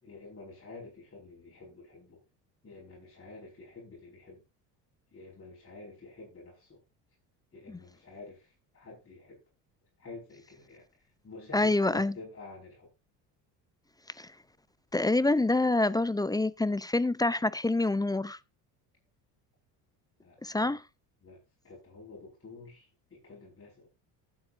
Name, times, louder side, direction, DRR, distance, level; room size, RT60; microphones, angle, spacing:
voice 1, 0.0-2.2 2.6-4.4 5.1-6.8 7.5-9.4 10.0-10.8 11.2-12.9 20.2-20.7 21.2-23.9, left 3 dB, 25° left, 5.3 m, -49 dB
voice 2, 11.5-12.1 14.2-14.3 14.9-18.4 20.4-20.8, left 2 dB, 10° left, 0.5 m, -26 dB
19.0 x 7.7 x 2.6 m
hypercardioid pair, 70°, 48 cm